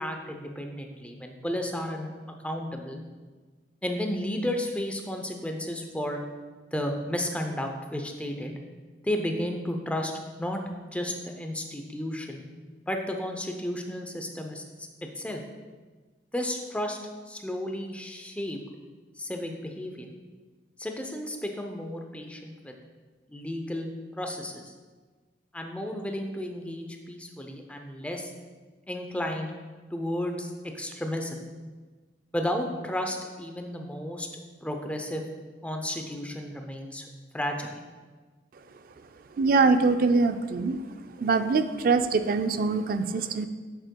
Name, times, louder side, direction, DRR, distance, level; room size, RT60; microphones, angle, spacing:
voice 1, 0.0-2.1 2.4-3.0 3.8-6.2 6.7-8.5 9.0-10.1 10.4-10.6 10.9-12.4 12.9-14.9 15.2-15.4 16.3-17.0 17.3-18.6 19.2-20.1 20.8-22.7 23.3-24.7 25.5-28.3 28.9-29.5 29.9-31.4 32.3-34.3 34.6-35.2 35.6-37.1 37.3-37.9, left 1 dB, 5° left, 3 dB, 0.5 m, -33 dB
voice 2, 39.4-40.8 41.2-43.5, right 4 dB, 50° right, 9 dB, 0.4 m, -23 dB
8.1 x 7.4 x 2.2 m, 1.4 s
head